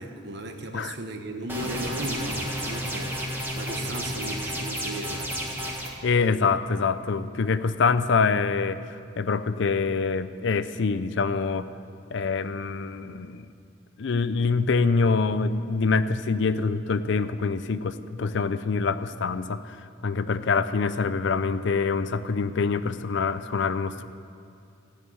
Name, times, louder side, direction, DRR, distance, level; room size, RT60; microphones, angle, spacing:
voice 1, 0.0-5.3, right 1 dB, 60° right, 5 dB, 1.1 m, -36 dB
sound 1, 1.5-5.9, equal, 10° right, 1.5 m, -31 dB
voice 2, 6.0-11.7 12.1-13.5 14.0-19.8 20.0-24.0, left 4 dB, 65° left, 13 dB, 0.5 m, -25 dB
14.5 x 6.6 x 9.0 m, 2.4 s
head